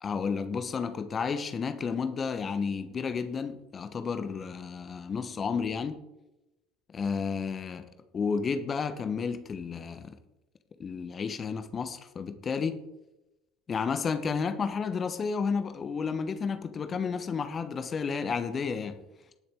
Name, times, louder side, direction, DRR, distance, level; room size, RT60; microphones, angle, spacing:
voice 1, 0.0-6.0 6.9-7.9 8.1-10.2 10.8-12.8 13.7-19.0, left 5 dB, 30° left, 1.0 m, -31 dB
19.5 x 7.0 x 3.6 m
figure-of-eight pair, 65°, 0 cm